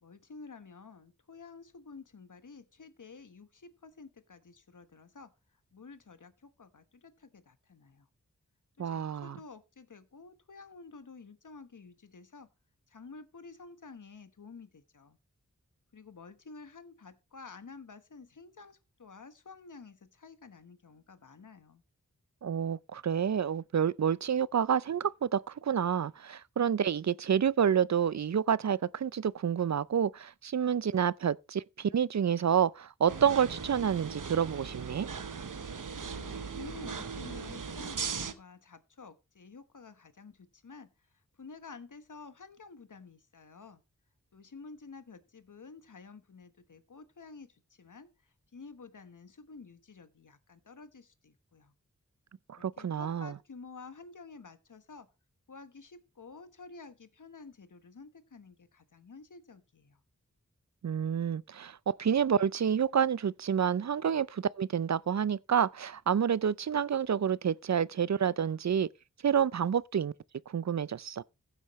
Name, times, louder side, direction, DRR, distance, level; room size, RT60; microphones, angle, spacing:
voice 1, 0.0-8.1 8.8-12.5 12.9-15.2 15.9-21.8 36.0-43.8 44.3-51.7 52.5-55.1 55.5-60.0, left 4 dB, 75° left, 1.2 m, -51 dB
voice 2, 8.8-9.4 22.4-35.1 52.5-53.3 60.8-68.9 69.2-70.1 70.5-71.2, right 8 dB, 60° right, 0.5 m, -29 dB
sound 1, 33.1-38.3, right 5 dB, 80° right, 1.0 m, -39 dB
15.0 x 8.2 x 3.1 m
wide cardioid pair, 50°, 31 cm